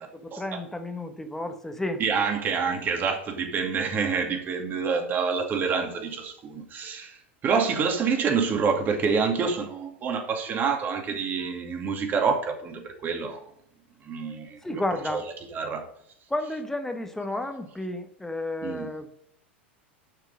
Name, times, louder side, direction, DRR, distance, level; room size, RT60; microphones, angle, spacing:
voice 1, 0.1-2.0 14.6-15.3 16.3-19.2, left 1 dB, 5° left, 1.2 m, -32 dB
voice 2, 2.0-13.4 14.0-14.8 15.1-15.2 15.5-15.8 18.6-18.9, right 5 dB, 30° right, 2.3 m, -27 dB
11.5 x 6.1 x 5.5 m
figure-of-eight pair, 85°, 6 cm